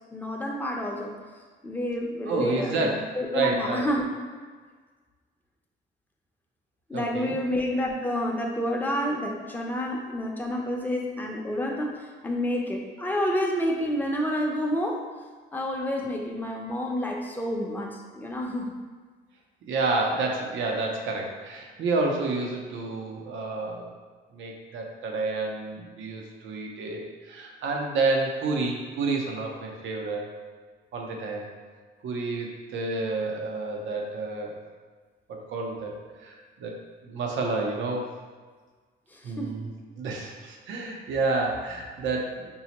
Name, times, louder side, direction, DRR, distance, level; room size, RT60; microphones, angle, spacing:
voice 1, 0.1-1.1 1.6-2.9 3.1-4.1 6.9-15.0 15.5-18.7 39.4-39.6, left 1 dB, 10° left, -1 dB, 0.6 m, -29 dB
voice 2, 2.3-3.0 3.3-3.8 6.9-7.4 19.6-23.9 24.3-30.3 30.9-31.5 32.0-34.6 35.3-35.9 36.2-36.7 37.0-38.0 39.2-39.7 40.0-42.6, right 3 dB, 75° right, 0 dB, 0.7 m, -29 dB
5.3 x 2.1 x 2.9 m, 1.5 s
cardioid pair, 90°, 20 cm